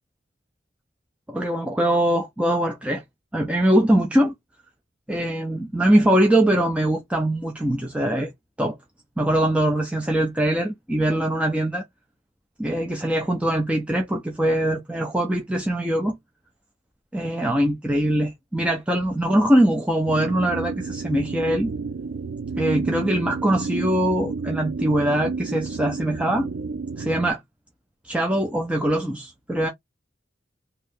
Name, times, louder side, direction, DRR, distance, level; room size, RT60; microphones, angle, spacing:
voice 1, 1.3-3.0 3.3-4.3 5.1-8.3 8.6-8.8 9.2-11.8 12.6-16.2 17.1-21.7 22.6-26.5 27.0-27.4 28.0-29.7, right 1 dB, 5° right, 0.5 m, -22 dB
sound 1, 20.1-27.3, right 4 dB, 80° right, 0.5 m, -31 dB
2.9 x 2.7 x 3.4 m
head